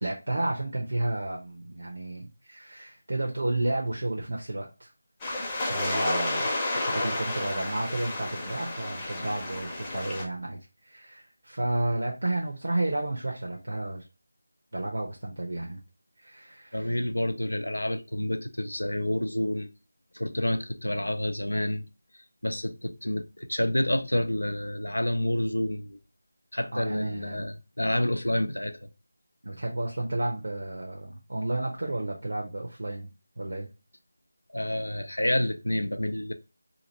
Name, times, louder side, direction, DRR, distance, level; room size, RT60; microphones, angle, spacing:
voice 1, 0.0-4.9 5.7-6.5 6.8-14.1 14.7-15.8 16.2-17.0 26.7-27.5 29.4-33.1 33.4-33.7, right 2 dB, 70° right, 0.8 m, -32 dB
sound 1, 5.2-10.3, left 2 dB, 15° left, 0.7 m, -31 dB
voice 2, 16.7-19.7 20.1-21.8 22.4-26.0 26.5-28.9 34.5-36.3, left 1 dB, 90° left, 0.5 m, -29 dB
2.9 x 2.5 x 2.9 m
figure-of-eight pair, 165°, 0 cm